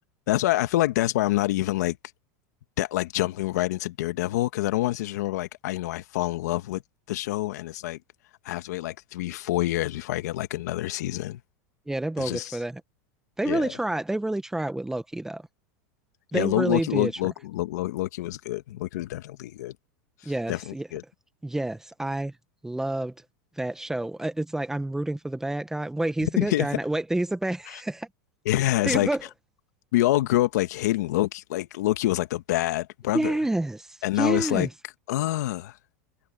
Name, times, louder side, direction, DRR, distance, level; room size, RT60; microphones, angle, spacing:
voice 1, 0.3-2.0 2.8-6.8 7.1-8.0 8.4-11.4 12.2-12.6 13.4-13.7 16.3-19.7 20.2-21.0 26.4-26.7 27.7-27.8 28.4-29.1 29.9-33.3 34.0-34.7 35.1-35.8, left 16 dB, 80° left, 1.6 m, -26 dB
voice 2, 11.9-12.8 13.4-15.4 16.3-17.1 20.2-20.9 21.4-22.3 22.6-23.1 23.6-28.1 28.8-29.2 33.1-34.7, right 1 dB, 5° right, 1.3 m, -28 dB
supercardioid pair, 125°, 9 cm